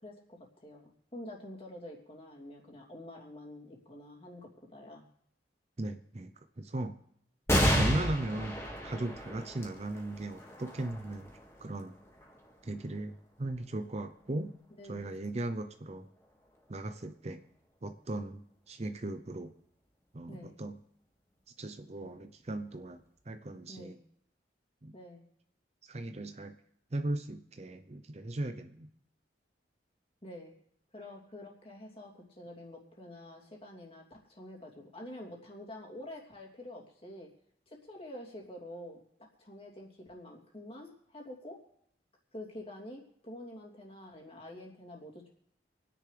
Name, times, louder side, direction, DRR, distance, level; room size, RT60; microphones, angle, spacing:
voice 1, 0.0-5.1 14.8-15.2 20.3-20.5 23.7-24.0 24.9-25.2 30.2-30.5 30.9-37.3 37.7-41.6 42.3-45.3, left 1 dB, 30° left, -2 dB, 3.0 m, -47 dB
voice 2, 5.8-6.3 6.6-7.0 7.7-11.3 11.6-11.9 12.6-14.5 14.9-16.1 16.7-17.4 17.8-19.5 20.1-20.8 21.6-23.0 23.3-24.0 24.8-24.9 25.8-26.6 26.9-28.9, right 2 dB, 35° right, 9 dB, 0.6 m, -37 dB
sound 1, 7.5-14.4 15.0-15.1 16.2-16.8, equal, 15° left, 2.0 m, -33 dB
27.0 x 10.0 x 3.4 m, 0.71 s
head